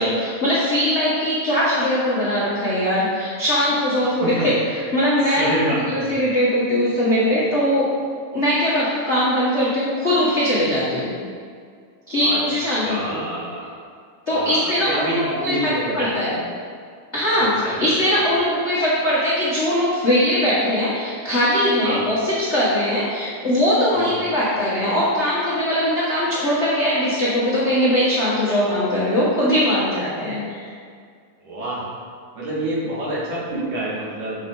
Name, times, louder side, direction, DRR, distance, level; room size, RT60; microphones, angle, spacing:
voice 1, 0.0-7.9 8.3-11.1 12.1-13.3 14.3-16.4 17.1-30.7, equal, 85° left, -9 dB, 0.6 m, -21 dB
voice 2, 5.3-6.1 12.2-13.7 14.3-16.1 17.4-18.3 21.8-22.1 23.9-24.2 31.4-31.8 32.3-34.5, right 1 dB, 65° right, -7 dB, 3.5 m, -28 dB
7.5 x 6.4 x 3.9 m, 2.1 s
omnidirectional pair, 3.9 m